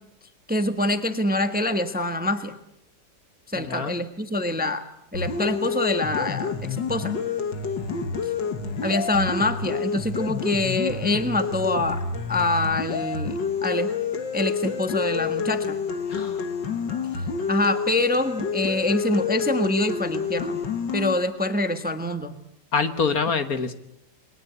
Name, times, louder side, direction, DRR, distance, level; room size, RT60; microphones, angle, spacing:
voice 1, 0.5-2.5 3.5-4.8 5.1-7.1 8.8-12.0 12.3-13.9 14.3-15.8 17.5-20.6 20.9-22.4, left 1 dB, 5° right, 8 dB, 1.2 m, -25 dB
voice 2, 3.6-4.0 16.1-16.5 22.7-23.7, left 5 dB, 55° left, 9 dB, 1.8 m, -25 dB
sound 1, 5.1-21.1, left 5 dB, 85° left, 2.3 m, -28 dB
29.0 x 21.5 x 8.2 m, 0.80 s
omnidirectional pair, 1.9 m